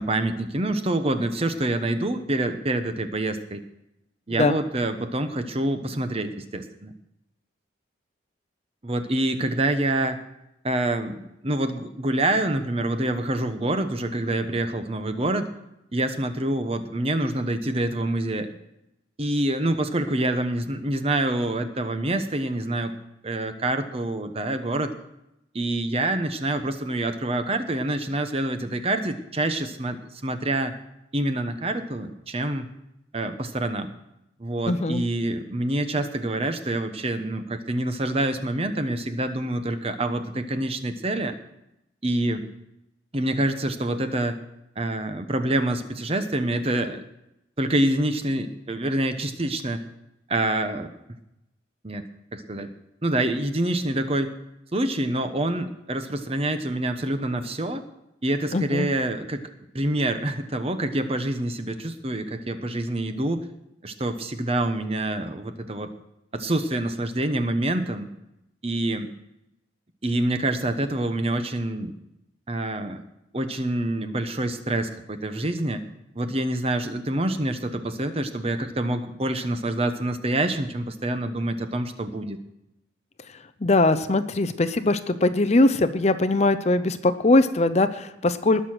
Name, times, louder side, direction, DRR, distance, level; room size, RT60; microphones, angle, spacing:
voice 1, 0.0-3.6 4.3-6.9 8.8-10.2 10.6-15.5 15.9-18.5 19.2-22.9 23.2-24.9 25.5-30.7 31.1-32.7 33.1-33.9 34.4-41.3 42.0-42.4 43.1-44.4 44.8-47.0 47.6-49.8 50.3-50.9 51.8-52.7 53.0-54.3 54.7-57.8 58.2-59.5 59.7-63.4 63.8-65.9 66.3-68.1 68.6-69.1 70.0-71.9 72.5-73.0 73.3-75.8 76.1-82.4, right 1 dB, 30° right, 8 dB, 1.0 m, -26 dB
voice 2, 34.7-35.0 58.5-58.9 83.6-88.7, left 2 dB, 35° left, 12 dB, 0.6 m, -21 dB
19.5 x 6.7 x 6.1 m, 0.86 s
head